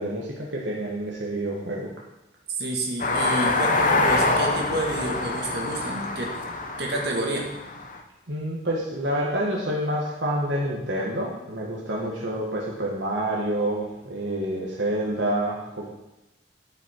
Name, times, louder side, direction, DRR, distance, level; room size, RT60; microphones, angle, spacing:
voice 1, 0.0-1.9 8.3-15.9, right 1 dB, 75° right, -3 dB, 1.6 m, -28 dB
voice 2, 2.6-6.3 6.8-7.4, right 1 dB, 60° right, -1 dB, 2.0 m, -29 dB
sound 1, 3.0-8.0, left 2 dB, 45° left, 1.0 m, -25 dB
13.5 x 6.0 x 4.6 m, 0.97 s
head